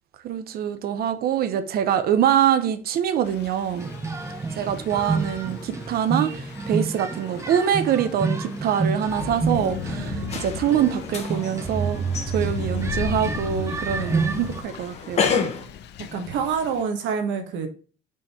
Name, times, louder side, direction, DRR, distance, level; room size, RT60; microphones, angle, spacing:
voice 1, 0.2-3.9 4.6-12.0 12.3-15.2, right 9 dB, 50° right, 0.8 m, -24 dB
Thunder / Rain, 3.2-16.8, left 9 dB, 55° left, 0.7 m, -37 dB
sound 1, 3.8-14.6, right 4 dB, 15° right, 0.6 m, -29 dB
sound 2, 10.3-15.7, left 6 dB, 30° left, 1.1 m, -31 dB
voice 2, 16.1-17.7, right 6 dB, 65° right, 1.6 m, -26 dB
5.5 x 5.4 x 4.4 m
cardioid pair, 175°, 21 cm